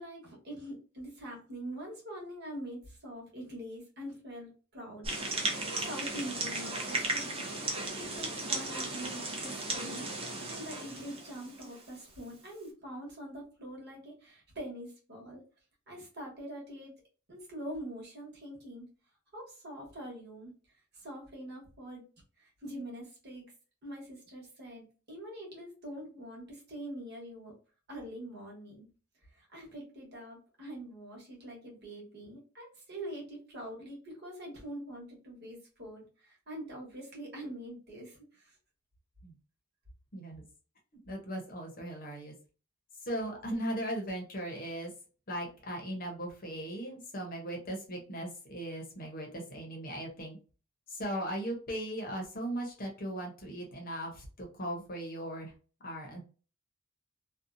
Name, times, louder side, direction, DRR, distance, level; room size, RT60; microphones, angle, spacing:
voice 1, 0.0-7.3 7.8-10.1 10.5-15.4 15.9-16.9 17.3-18.9 19.3-20.5 20.9-22.0 22.4-23.5 23.8-27.5 27.9-28.9 29.3-38.5, equal, 50° right, -2 dB, 1.2 m, -44 dB
sound 1, 5.0-11.8, right 2 dB, 25° right, 0.6 m, -36 dB
voice 2, 40.1-40.4 41.1-42.3 43.0-44.9 45.3-50.4 50.9-55.5 55.8-56.2, right 1 dB, 45° left, 1 dB, 0.9 m, -38 dB
2.7 x 2.3 x 2.5 m, 0.36 s
head